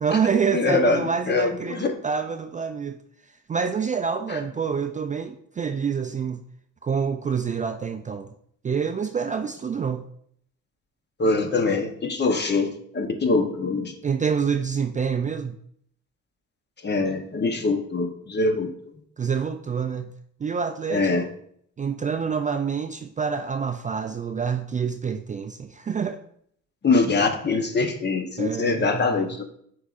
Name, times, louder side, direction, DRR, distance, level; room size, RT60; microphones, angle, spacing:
voice 1, 0.0-3.0 3.5-6.4 6.8-8.3 8.6-10.0 14.0-15.6 19.2-20.1 20.4-21.3 21.8-26.2 28.4-29.4, right 6 dB, 25° right, 0.3 m, -27 dB
voice 2, 0.5-1.9 4.3-4.4 11.2-13.9 16.8-18.7 20.9-21.2 26.8-29.5, left 3 dB, 35° left, 1.0 m, -23 dB
8.7 x 4.7 x 2.5 m
cardioid pair, 90°, 30 cm